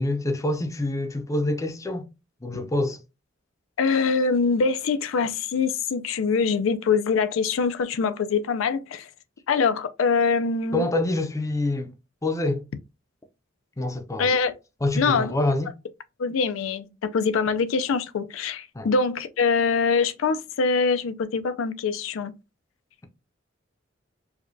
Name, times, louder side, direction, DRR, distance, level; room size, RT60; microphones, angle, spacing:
voice 1, 0.0-2.1 2.4-3.0 10.7-11.9 12.2-12.6 13.8-14.3 14.8-15.7 18.7-18.9, left 2 dB, 15° left, 0.5 m, -26 dB
voice 2, 3.8-9.1 9.5-10.9 14.2-14.6 15.0-15.3 16.2-22.3, left 5 dB, 90° left, 0.4 m, -24 dB
4.8 x 2.2 x 2.6 m
head